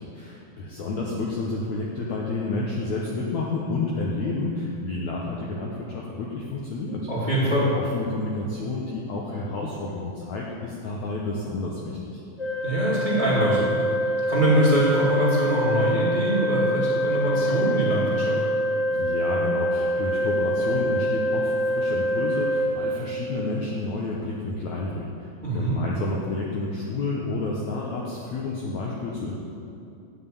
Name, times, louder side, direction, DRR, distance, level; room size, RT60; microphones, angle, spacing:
voice 1, 0.0-7.1 7.8-12.2 19.0-29.3, left 3 dB, 65° left, -3 dB, 1.9 m, -30 dB
voice 2, 7.1-7.7 12.6-13.7 14.3-18.4 25.4-25.7, right 1 dB, 15° right, -9 dB, 2.6 m, -23 dB
Organ, 12.4-23.4, equal, 30° left, 3.2 m, -25 dB
11.0 x 6.0 x 8.7 m, 2.7 s
omnidirectional pair, 4.3 m